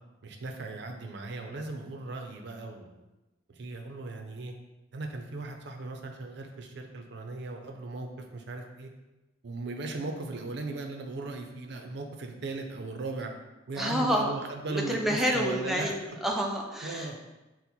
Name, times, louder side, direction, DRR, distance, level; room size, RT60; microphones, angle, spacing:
voice 1, 0.2-3.0 3.5-4.5 4.9-8.9 9.4-13.3 13.7-15.9 16.8-17.2, right 3 dB, 60° right, 3 dB, 0.5 m, -37 dB
voice 2, 13.8-14.3 14.7-17.2, equal, ahead, 0 dB, 0.3 m, -29 dB
4.3 x 2.1 x 4.0 m, 1.0 s
head